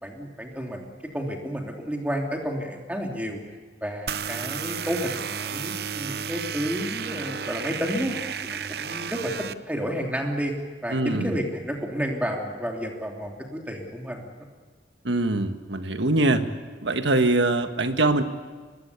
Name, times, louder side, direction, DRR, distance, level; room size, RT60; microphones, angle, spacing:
voice 1, 0.0-3.4 3.8-8.1 8.4-10.5 10.8-14.4, equal, 10° right, 1 dB, 3.1 m, -31 dB
sound 1, 4.1-9.5, right 7 dB, 55° right, 0.7 m, -32 dB
voice 2, 10.9-11.3 15.0-16.5 16.8-18.2, right 2 dB, 75° right, 8 dB, 1.6 m, -23 dB
24.0 x 21.0 x 8.4 m, 1.5 s
head